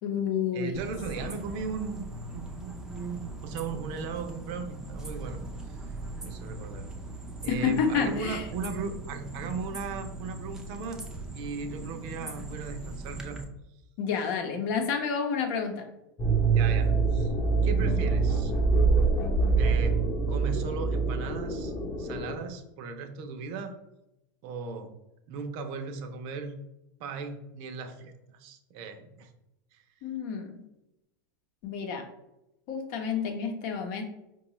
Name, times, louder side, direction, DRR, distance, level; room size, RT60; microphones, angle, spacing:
voice 1, 0.0-0.8 1.2-1.3 7.5-8.4 14.0-15.9 30.0-30.6 31.6-32.0 32.7-34.0, left 6 dB, 55° left, 5 dB, 0.8 m, -29 dB
voice 2, 0.5-2.1 2.3-5.4 5.7-6.0 6.2-6.9 7.4-11.0 11.3-13.4 14.2-14.3 16.5-17.3 17.6-18.5 19.5-20.0 20.3-21.7 22.0-23.7 24.4-24.9 25.3-26.6 27.0-29.3 29.7-29.8, right 5 dB, 50° right, 6 dB, 0.6 m, -37 dB
sound 1, 0.7-13.4, right 2 dB, 5° right, 0.5 m, -40 dB
sound 2, 16.2-22.3, right 4 dB, 25° left, 0.8 m, -25 dB
4.7 x 2.3 x 3.0 m, 0.92 s
hypercardioid pair, 120°, 12 cm